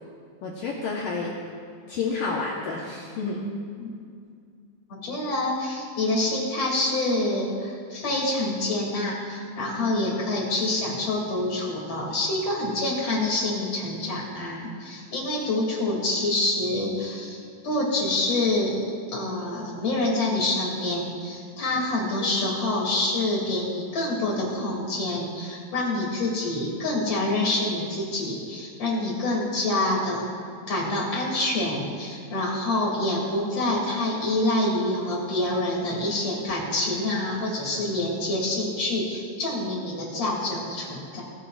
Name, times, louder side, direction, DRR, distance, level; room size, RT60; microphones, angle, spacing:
voice 1, 0.4-1.4 1.9-3.5 22.2-22.5, left 4 dB, 85° left, -3 dB, 1.9 m, -30 dB
voice 2, 4.9-30.2 30.7-41.2, left 2 dB, 40° left, -3 dB, 2.9 m, -26 dB
20.0 x 16.0 x 2.5 m, 2.2 s
omnidirectional pair, 5.5 m